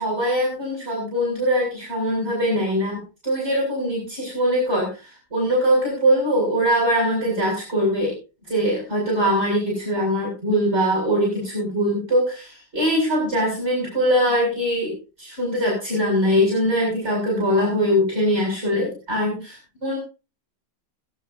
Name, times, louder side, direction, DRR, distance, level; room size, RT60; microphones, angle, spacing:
voice 1, 0.0-8.1 8.5-20.0, equal, 40° right, -3 dB, 7.7 m, -22 dB
22.0 x 11.0 x 2.7 m, 0.32 s
omnidirectional pair, 1.8 m